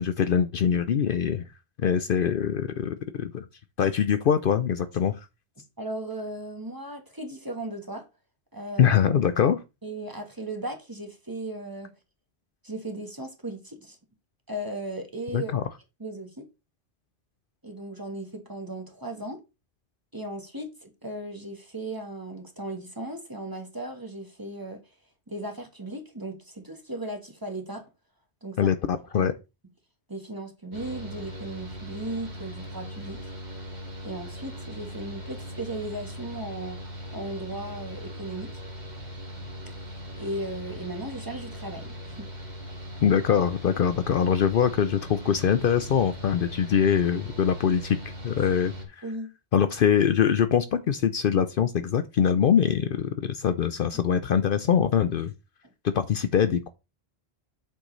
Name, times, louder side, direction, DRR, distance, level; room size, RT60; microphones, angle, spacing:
voice 1, 0.0-1.5 1.8-3.4 3.8-5.2 8.8-9.6 15.3-15.6 28.6-29.3 43.0-48.0 48.2-48.7 49.5-55.3 55.9-56.7, left 8 dB, 60° left, 0.7 m, -23 dB
voice 2, 5.8-8.0 8.5-9.0 9.8-11.9 12.6-14.0 14.5-15.5 16.0-16.5 17.6-19.4 20.1-24.8 25.3-27.8 28.4-28.7 29.1-29.3 30.1-33.2 34.0-36.8 37.1-38.5 39.9-42.3 49.0-49.3, right 1 dB, 20° right, 1.3 m, -36 dB
Mechanical fan, 30.7-48.8, equal, 40° right, 2.2 m, -40 dB
8.3 x 6.3 x 3.1 m
omnidirectional pair, 1.1 m